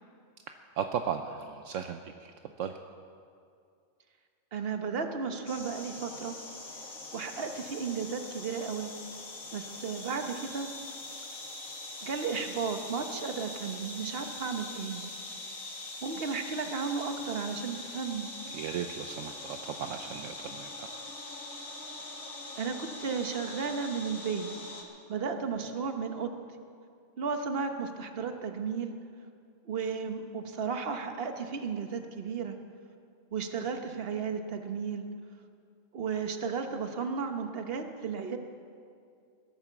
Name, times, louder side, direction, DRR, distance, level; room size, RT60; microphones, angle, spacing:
voice 1, 0.8-2.7 18.5-20.9, right 8 dB, 75° right, 6 dB, 1.0 m, -36 dB
voice 2, 4.5-6.3 7.1-8.9 9.5-10.7 12.0-15.0 16.0-18.3 22.6-24.5 25.1-26.3 27.2-28.9 29.6-32.6 33.3-35.1 35.9-38.4, right 5 dB, 50° right, 6 dB, 1.3 m, -34 dB
sound 1, 5.5-24.8, left 2 dB, 85° left, 2.2 m, -43 dB
17.0 x 11.0 x 7.1 m, 2.3 s
omnidirectional pair, 1.4 m